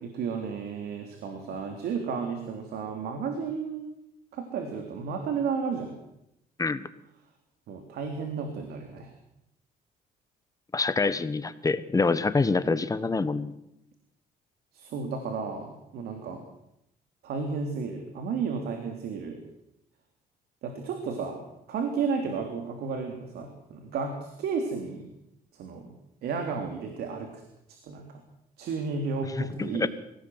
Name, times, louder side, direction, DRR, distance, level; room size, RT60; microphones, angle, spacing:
voice 1, 0.2-3.8 4.3-5.9 7.7-9.1 14.7-16.4 17.2-19.4 20.6-25.1 25.6-25.9 26.2-27.4 27.7-28.2 28.6-29.9, right 5 dB, 70° right, 5 dB, 3.4 m, -33 dB
voice 2, 10.7-13.6 29.6-29.9, left 3 dB, 20° left, 13 dB, 1.4 m, -26 dB
24.5 x 17.5 x 8.0 m, 0.82 s
cardioid pair, 110°, 17 cm